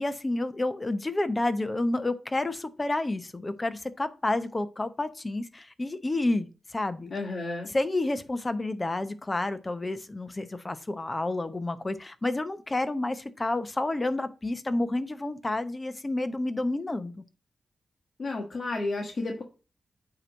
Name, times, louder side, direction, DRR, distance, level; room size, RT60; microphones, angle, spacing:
voice 1, 0.0-7.1 7.7-17.2, left 2 dB, 25° left, 0.9 m, -30 dB
voice 2, 7.1-7.7 18.2-19.4, left 2 dB, 50° left, 1.5 m, -32 dB
8.6 x 3.0 x 6.4 m
cardioid pair, 80°, 0 cm